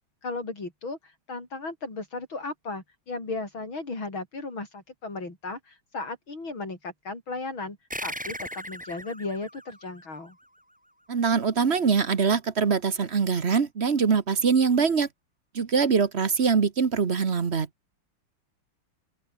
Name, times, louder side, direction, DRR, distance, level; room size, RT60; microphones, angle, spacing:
voice 1, 0.2-10.4, left 3 dB, 70° left, 6.8 m, -36 dB
sound 1, 7.9-10.9, equal, 5° right, 6.0 m, -39 dB
voice 2, 11.1-15.1 15.5-17.7, right 5 dB, 35° right, 1.3 m, -23 dB
open air
omnidirectional pair, 2.2 m